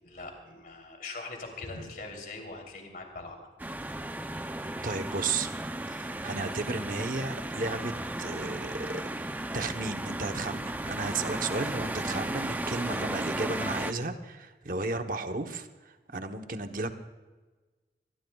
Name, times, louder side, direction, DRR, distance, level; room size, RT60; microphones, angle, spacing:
voice 1, 0.0-3.4, left 3 dB, 50° left, 2 dB, 3.3 m, -42 dB
sound 1, 3.6-13.9, right 1 dB, 10° right, 0.5 m, -35 dB
voice 2, 4.8-5.5 5.9-7.9 8.2-16.9, right 3 dB, 50° right, 7 dB, 1.0 m, -34 dB
23.0 x 20.0 x 2.3 m, 1.3 s
head